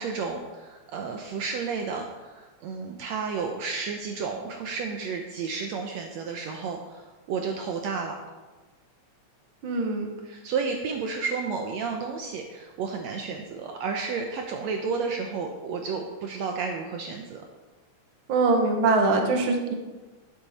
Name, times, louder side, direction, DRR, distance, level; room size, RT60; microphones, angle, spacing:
voice 1, 0.0-8.2 10.2-17.4, right 5 dB, 70° right, 3 dB, 1.9 m, -32 dB
voice 2, 9.6-10.1 18.3-19.7, right 3 dB, 50° right, 3 dB, 1.9 m, -23 dB
12.0 x 10.5 x 4.2 m, 1.3 s
omnidirectional pair, 3.4 m